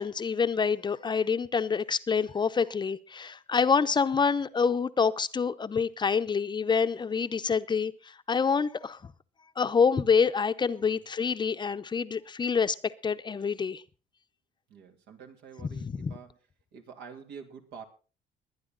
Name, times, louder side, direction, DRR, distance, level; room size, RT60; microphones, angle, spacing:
voice 1, 0.0-7.9 8.3-9.0 9.6-12.8 13.0-13.8 15.7-16.1, left 5 dB, 25° left, 0.7 m, -27 dB
voice 2, 14.7-16.4 16.7-17.8, right 6 dB, 80° right, 3.0 m, -47 dB
21.5 x 9.8 x 3.9 m
cardioid pair, 110°, 17 cm